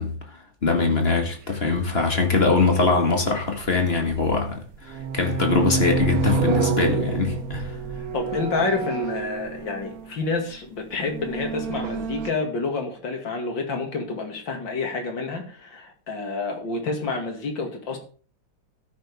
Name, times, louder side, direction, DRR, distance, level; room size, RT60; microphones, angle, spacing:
voice 1, 0.0-7.8, left 3 dB, 30° left, 1.9 m, -22 dB
sound 1, 1.8-1.9 3.6-4.3 4.7-10.2 11.0-12.3, right 5 dB, 55° right, 1.2 m, -28 dB
voice 2, 8.1-18.0, left 3 dB, 70° left, 3.0 m, -28 dB
13.5 x 9.0 x 3.6 m
omnidirectional pair, 2.1 m